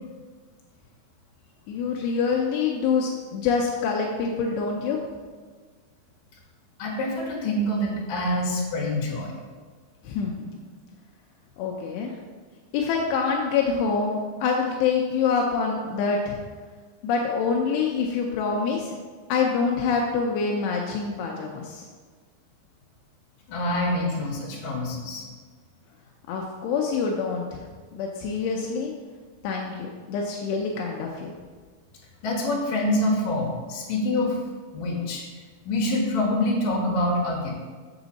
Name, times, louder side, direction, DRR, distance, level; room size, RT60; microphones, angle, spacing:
voice 1, 1.7-5.0 10.0-10.5 11.6-12.1 12.7-16.4 17.0-19.0 19.3-21.9 26.3-27.6 27.9-28.9 29.4-31.4, left 5 dB, 85° left, 0 dB, 2.8 m, -26 dB
voice 2, 6.8-9.3 23.5-25.3 32.2-34.4 34.7-35.2 35.6-37.5, left 1 dB, 60° left, -3 dB, 3.2 m, -26 dB
7.9 x 7.2 x 4.0 m, 1.5 s
omnidirectional pair, 4.9 m